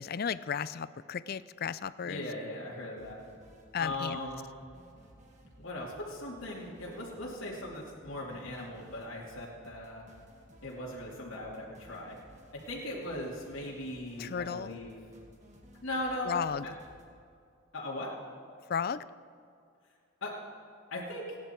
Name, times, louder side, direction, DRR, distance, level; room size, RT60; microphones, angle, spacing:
voice 1, 0.0-2.3 3.7-4.2 14.2-14.8 16.3-16.7 18.7-19.0, left 6 dB, 45° left, 17 dB, 0.4 m, -34 dB
voice 2, 2.0-3.3 3.8-4.4 5.6-10.0 10.6-12.2 12.7-14.9 15.8-16.7 17.7-18.1 20.2-20.3 20.9-21.4, left 1 dB, 75° left, -4 dB, 2.7 m, -39 dB
sound 1, 3.0-17.1, equal, 35° right, 1.9 m, -57 dB
29.5 x 10.5 x 4.5 m, 2.4 s
head